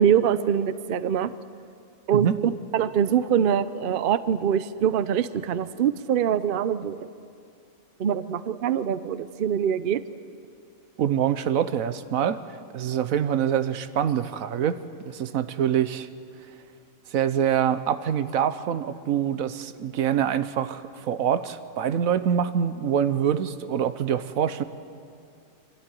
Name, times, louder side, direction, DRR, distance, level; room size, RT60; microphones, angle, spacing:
voice 1, 0.0-1.3 2.1-7.0 8.0-10.0, right 9 dB, 55° right, 14 dB, 0.7 m, -24 dB
voice 2, 11.0-12.4 12.7-16.1 17.1-24.6, right 9 dB, 85° right, 12 dB, 1.2 m, -25 dB
25.0 x 12.5 x 9.1 m, 2.4 s
omnidirectional pair, 1.4 m